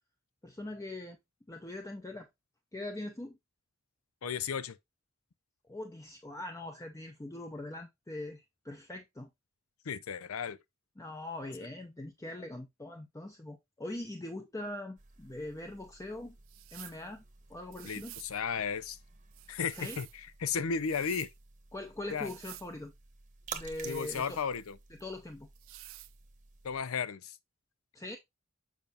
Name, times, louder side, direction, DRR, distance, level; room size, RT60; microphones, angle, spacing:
voice 1, 0.4-1.2 1.5-2.3 2.7-3.4 5.7-9.3 11.0-16.4 16.7-17.2 17.5-18.1 19.7-20.0 21.7-22.9 23.5-24.4 25.0-25.5 27.9-28.2, left 1 dB, 15° left, 0.6 m, -42 dB
voice 2, 4.2-4.8 9.9-10.6 17.8-19.0 19.5-21.3 22.1-22.3 23.8-24.8 26.6-27.4, left 6 dB, 90° left, 0.5 m, -34 dB
sound 1, 15.0-26.8, right 6 dB, 40° right, 1.0 m, -52 dB
sound 2, 16.5-17.0 17.7-18.3 19.3-20.2 20.7-21.3 22.1-22.7 23.7-24.7 25.5-26.1, right 18 dB, 70° right, 0.4 m, -50 dB
7.3 x 5.1 x 2.8 m
head